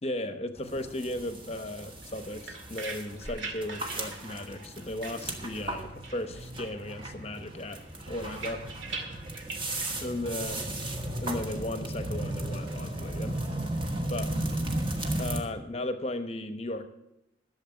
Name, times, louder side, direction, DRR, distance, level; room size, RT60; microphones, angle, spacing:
voice 1, 0.0-8.6 10.0-10.7 11.2-13.4 14.1-14.3 15.2-16.9, left 1 dB, 30° left, 9 dB, 0.8 m, -36 dB
sound 1, 0.6-15.4, right 1 dB, 25° right, 1.3 m, -35 dB
sound 2, 2.0-5.8 6.0-6.9 7.2-10.4, right 3 dB, 75° right, 2.0 m, -43 dB
sound 3, 3.8-7.7 8.0-10.6 10.9-14.0, right 2 dB, 90° right, 1.0 m, -52 dB
12.0 x 7.0 x 7.0 m, 0.89 s
head